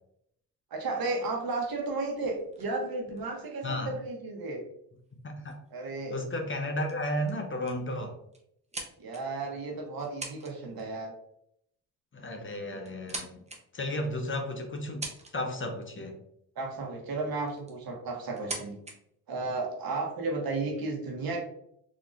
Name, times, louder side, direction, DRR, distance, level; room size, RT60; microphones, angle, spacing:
voice 1, 0.7-4.6 5.7-6.2 9.0-11.1 16.6-18.8 19.3-21.4, right 3 dB, 55° right, 1 dB, 1.2 m, -33 dB
sound 1, 1.6-4.2 5.1-5.2 5.5-5.7 6.3-6.6 6.9-7.0 7.3-7.8 8.3-9.5 10.0-10.5 10.8-11.1 12.1-12.2 12.7-13.6 14.2-14.3 14.8-15.6 16.9-17.0 17.5-17.8 18.3-18.9, right 2 dB, 15° right, 0.9 m, -42 dB
voice 2, 3.6-3.9 5.2-5.6 6.1-8.2 12.1-13.4 13.7-15.1 15.3-16.2, left 1 dB, 30° left, 4 dB, 0.7 m, -33 dB
3.9 x 2.9 x 2.5 m, 0.73 s
supercardioid pair, 60°, 41 cm